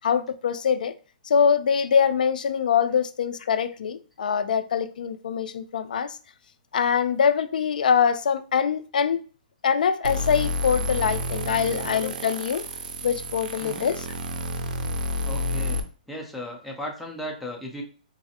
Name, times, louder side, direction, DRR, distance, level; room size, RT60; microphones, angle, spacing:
voice 1, 0.0-0.9 1.2-6.2 6.7-9.2 9.6-12.6 13.0-14.1, left 7 dB, 75° left, 0.3 m, -23 dB
sound 1, 10.0-15.8, left 1 dB, 80° right, 0.6 m, -30 dB
voice 2, 15.2-15.8 16.1-17.8, equal, ahead, 0.4 m, -36 dB
3.9 x 2.4 x 2.8 m
hypercardioid pair, 175°, 5 cm